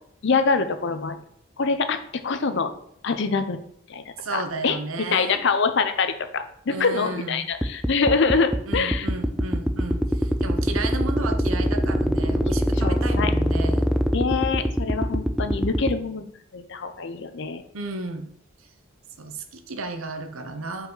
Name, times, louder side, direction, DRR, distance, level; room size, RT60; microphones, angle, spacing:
voice 1, 0.2-1.2 1.6-2.0 2.2-2.7 3.0-3.6 3.9-4.0 4.3-4.8 5.1-9.1 12.8-13.3 14.1-16.3 16.5-17.6, left 4 dB, 60° left, 9 dB, 0.6 m, -24 dB
voice 2, 4.2-5.4 6.7-7.5 8.7-13.9 17.7-18.3 19.2-20.9, right 2 dB, 85° right, 7 dB, 0.8 m, -33 dB
sound 1, 7.6-15.9, equal, ahead, 0.3 m, -24 dB
5.3 x 4.7 x 3.9 m, 0.69 s
head